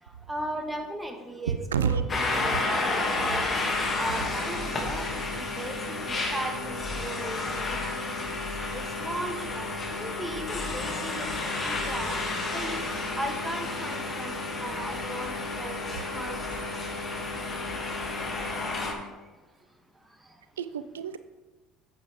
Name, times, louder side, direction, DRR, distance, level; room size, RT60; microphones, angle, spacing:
voice 1, 0.0-3.5 4.0-12.8 13.1-16.7 17.1-17.3 17.9-18.5, right 1 dB, 15° right, 4 dB, 1.5 m, -38 dB
voice 2, 1.5-2.1 2.4-2.7 6.1-6.2 16.5-16.7 20.6-21.2, right 7 dB, 85° right, 13 dB, 0.4 m, -30 dB
sound 1, 2.1-18.9, left 3 dB, 35° left, 2.2 m, -31 dB
9.9 x 7.9 x 3.5 m, 1.2 s
hypercardioid pair, 65°, 0 cm